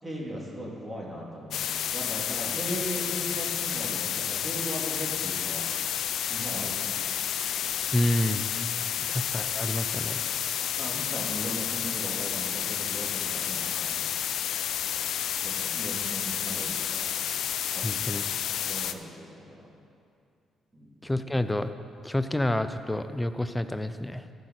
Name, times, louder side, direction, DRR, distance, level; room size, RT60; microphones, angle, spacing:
voice 1, 0.0-5.7 6.3-7.0 8.9-9.1 10.8-14.0 15.4-17.1 17.7-18.1 18.6-19.7 20.7-20.9, equal, 15° right, -4 dB, 2.9 m, -38 dB
sound 1, 1.5-18.9, left 9 dB, 75° left, 0.5 m, -30 dB
voice 2, 7.9-8.4 9.1-10.2 17.8-18.2 21.0-21.7 22.0-24.2, left 1 dB, 10° left, 10 dB, 0.6 m, -28 dB
14.5 x 5.6 x 6.6 m, 2.3 s
cardioid pair, 90°, 0 cm